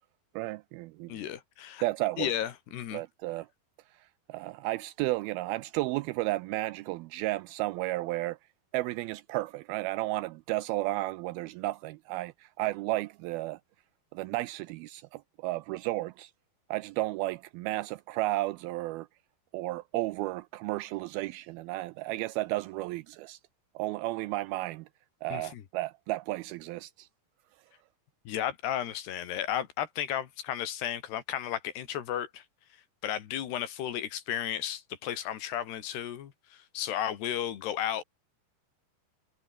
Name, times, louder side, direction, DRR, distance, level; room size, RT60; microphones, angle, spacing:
voice 1, 0.4-1.2 1.8-2.3 2.9-3.5 4.0-8.4 8.7-13.6 14.1-16.3 16.7-19.1 19.5-23.4 23.8-24.9 25.2-27.1, right 19 dB, 80° right, 2.2 m, -33 dB
voice 2, 1.1-1.8 2.2-3.0 25.3-25.6 28.3-32.4 33.0-38.0, left 10 dB, 85° left, 4.2 m, -34 dB
omnidirectional pair, 4.7 m